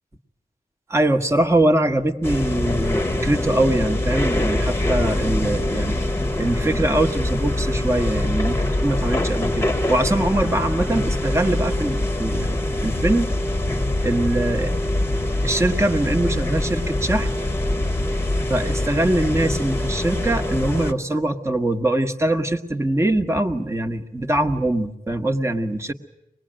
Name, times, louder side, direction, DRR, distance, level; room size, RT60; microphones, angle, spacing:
voice 1, 0.9-6.0 6.4-13.4 14.0-14.7 15.4-17.3 18.5-25.9, right 1 dB, 15° right, 6 dB, 1.3 m, -22 dB
sound 1, 2.2-20.9, left 1 dB, 15° left, 1.2 m, -24 dB
25.0 x 20.0 x 8.9 m, 0.83 s
wide cardioid pair, 145°, 16 cm